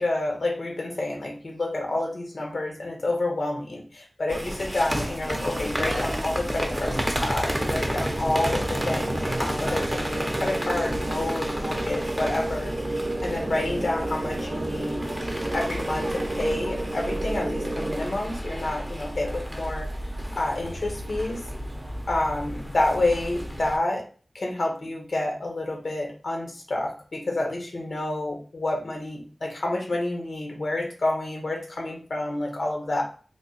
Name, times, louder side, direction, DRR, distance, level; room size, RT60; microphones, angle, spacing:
voice 1, 0.0-15.0 15.5-19.9 20.3-21.4 22.1-24.0 24.3-33.0, left 2 dB, 75° left, 1 dB, 0.9 m, -29 dB
sound 1, 4.3-23.8, equal, 10° right, 0.5 m, -31 dB
sound 2, 7.4-18.0, right 1 dB, 85° right, 0.6 m, -32 dB
3.3 x 2.1 x 3.9 m, 0.40 s
wide cardioid pair, 80°, 0 cm